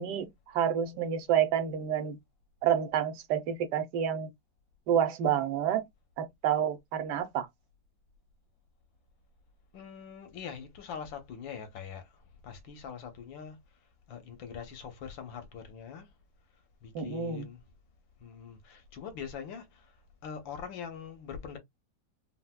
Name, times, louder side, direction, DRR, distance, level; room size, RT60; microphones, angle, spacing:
voice 1, 0.0-2.2 2.6-4.3 4.9-5.8 6.2-7.5 16.9-17.5, right 9 dB, 70° right, 1.2 m, -29 dB
voice 2, 9.7-12.1 12.4-13.6 14.1-16.1 16.8-17.6 18.2-19.9 20.2-21.6, left 7 dB, 85° left, 1.7 m, -43 dB
4.6 x 2.2 x 2.2 m
omnidirectional pair, 2.0 m